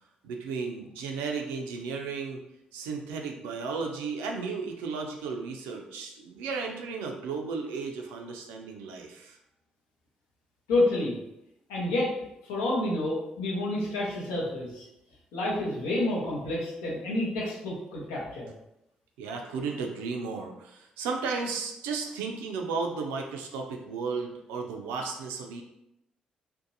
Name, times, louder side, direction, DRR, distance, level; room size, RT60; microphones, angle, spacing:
voice 1, 0.2-2.4 2.7-9.4 19.2-25.6, right 4 dB, 75° right, 2 dB, 0.3 m, -34 dB
voice 2, 10.7-11.2 11.7-12.1 12.4-14.8 15.3-18.5, left 2 dB, 80° left, -5 dB, 0.7 m, -29 dB
2.6 x 2.1 x 2.6 m, 0.84 s
hypercardioid pair, 45°, 4 cm